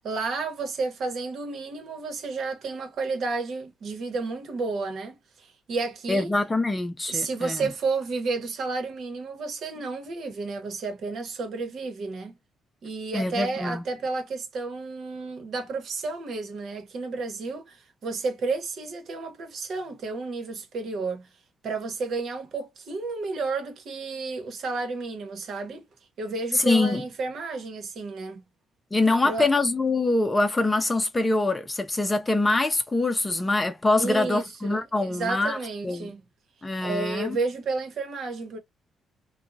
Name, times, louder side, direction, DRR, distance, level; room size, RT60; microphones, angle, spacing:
voice 1, 0.0-6.3 7.1-12.3 12.8-21.3 21.6-25.9 26.2-28.4 29.2-29.5 34.0-36.2 36.8-38.6, right 3 dB, 65° right, 1.1 m, -31 dB
voice 2, 6.1-7.7 13.1-13.8 26.5-27.0 28.9-35.6 35.8-36.1 36.6-37.4, left 2 dB, 20° left, 0.6 m, -24 dB
2.9 x 2.3 x 2.6 m
cardioid pair, 90°, 0 cm